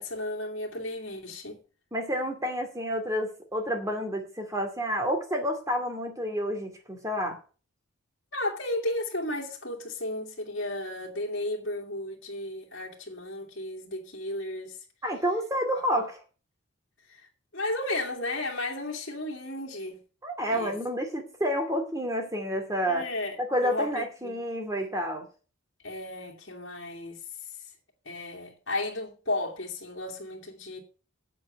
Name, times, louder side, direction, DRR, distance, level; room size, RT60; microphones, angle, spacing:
voice 1, 0.0-1.6 8.3-14.8 17.1-17.3 17.5-20.0 20.5-20.7 22.9-23.4 23.6-24.4 25.8-27.2 28.1-30.8, left 1 dB, 60° left, 2.5 m, -34 dB
voice 2, 1.9-7.4 15.0-16.2 20.2-23.1 23.5-25.3, equal, 15° right, 2.3 m, -29 dB
8.3 x 7.8 x 8.0 m
head